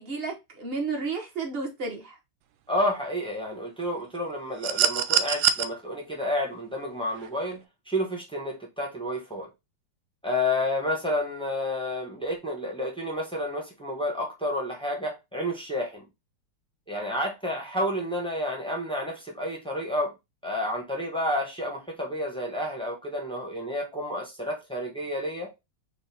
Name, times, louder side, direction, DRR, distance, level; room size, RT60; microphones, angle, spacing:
voice 1, 0.0-2.2, right 4 dB, 35° right, 1.0 m, -32 dB
voice 2, 2.7-9.5 10.2-16.0 16.9-20.1 20.4-25.5, left 1 dB, 5° left, 0.6 m, -30 dB
sound 1, 4.6-5.7 7.2-7.3, right 10 dB, 75° right, 1.0 m, -23 dB
5.4 x 2.5 x 3.4 m
omnidirectional pair, 2.3 m